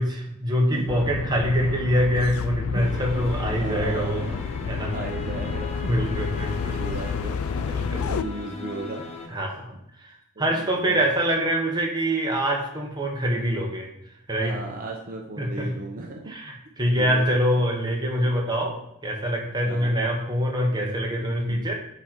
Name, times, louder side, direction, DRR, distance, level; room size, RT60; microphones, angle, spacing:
voice 1, 0.0-4.3 4.6-4.9 5.9-6.8 7.7-8.1 9.3-9.7 10.0-13.9 14.3-14.6 15.4-15.7 16.3-21.7, equal, 20° right, 0 dB, 1.3 m, -25 dB
sound 1, 0.9-8.2, left 6 dB, 85° left, 0.4 m, -30 dB
sound 2, 2.8-9.3, left 3 dB, 30° left, 1.0 m, -38 dB
voice 2, 3.2-9.4 10.4-11.0 13.3-13.6 14.4-16.2 16.9-17.3 18.2-18.4 19.6-20.0 20.7-20.9 21.4-21.7, right 2 dB, 40° right, 0 dB, 0.8 m, -37 dB
9.3 x 3.9 x 4.6 m, 0.79 s
head